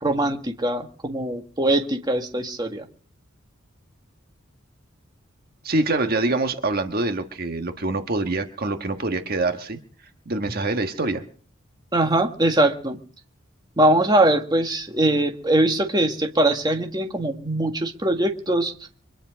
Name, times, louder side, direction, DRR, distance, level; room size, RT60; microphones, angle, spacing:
voice 1, 0.0-2.8 11.9-13.0 13.8-18.7, right 1 dB, 20° right, 4 dB, 1.7 m, -22 dB
voice 2, 5.6-9.8 10.2-11.2, right 2 dB, 50° right, 6 dB, 1.4 m, -25 dB
24.5 x 10.0 x 5.1 m, 0.43 s
head